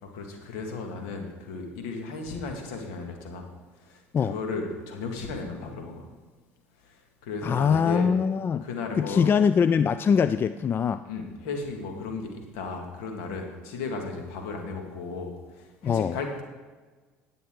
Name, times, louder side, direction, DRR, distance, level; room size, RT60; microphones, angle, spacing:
voice 1, 0.0-3.5 3.7-6.1 6.8-8.1 8.6-9.3 11.1-16.4, left 4 dB, 65° left, 3 dB, 2.0 m, -35 dB
voice 2, 7.4-8.7 8.9-11.0 15.8-16.2, left 6 dB, 30° left, 13 dB, 0.3 m, -23 dB
18.5 x 6.9 x 3.8 m, 1.3 s
figure-of-eight pair, 60°, 7 cm